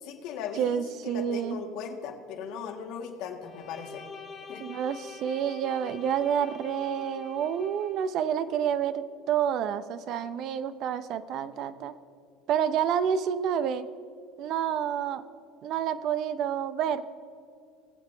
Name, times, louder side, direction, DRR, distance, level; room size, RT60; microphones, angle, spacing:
voice 1, 0.0-4.0 4.5-4.6, left 6 dB, 65° left, 3 dB, 1.7 m, -38 dB
voice 2, 0.6-1.6 4.6-11.9 12.5-13.9 14.4-15.2 15.6-17.0, right 8 dB, 55° right, 13 dB, 0.7 m, -29 dB
Bowed string instrument, 3.4-8.1, left 5 dB, 40° left, 1.4 m, -45 dB
21.5 x 7.6 x 3.3 m, 2.5 s
hypercardioid pair, 80°, 0 cm